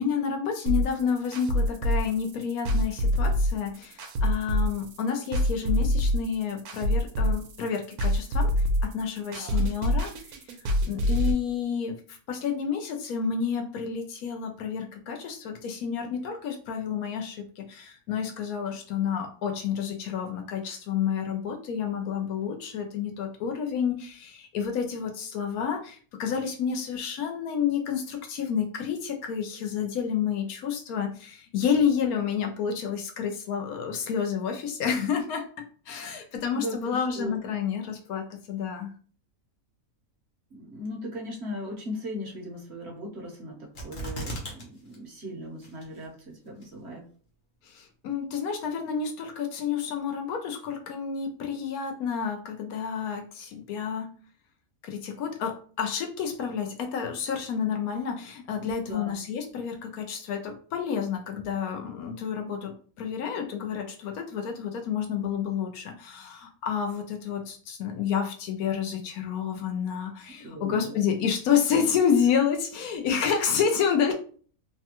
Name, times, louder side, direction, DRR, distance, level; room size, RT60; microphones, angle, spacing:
voice 1, 0.0-10.1 10.9-35.4 35.9-38.9 47.7-54.1 54.8-74.1, left 7 dB, 75° left, 4 dB, 1.1 m, -29 dB
sound 1, 0.7-11.3, equal, 85° right, 1.1 m, -25 dB
voice 2, 36.5-37.4 40.5-43.6 43.8-46.1 46.4-47.0 58.6-59.1 70.4-71.0, left 1 dB, 55° right, -1 dB, 0.9 m, -38 dB
sound 2, 43.8-44.6 44.9-45.0 45.6-46.1 46.6-46.7, right 1 dB, 40° left, 0.8 m, -35 dB
3.3 x 2.2 x 2.8 m, 0.43 s
omnidirectional pair, 1.6 m